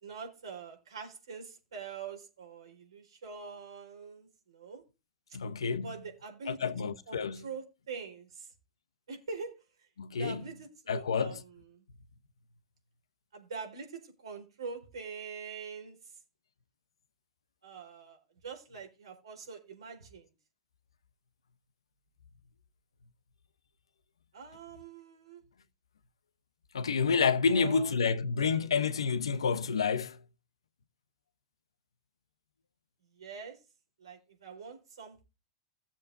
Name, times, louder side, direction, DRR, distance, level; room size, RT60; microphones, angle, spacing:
voice 1, 0.0-4.8 5.8-6.6 7.1-8.5 9.1-9.6 10.2-11.4 11.7-11.8 13.3-16.0 17.6-20.3 24.3-25.4 27.5-27.9 28.3-28.7 33.2-33.6 34.0-35.2, right 5 dB, 85° right, 4.0 m, -44 dB
voice 2, 5.3-6.1 6.4-7.5 10.0-10.6 10.9-11.4 26.7-30.2, left 5 dB, 90° left, 0.9 m, -29 dB
17.0 x 7.4 x 2.7 m
hypercardioid pair, 100°, 3 cm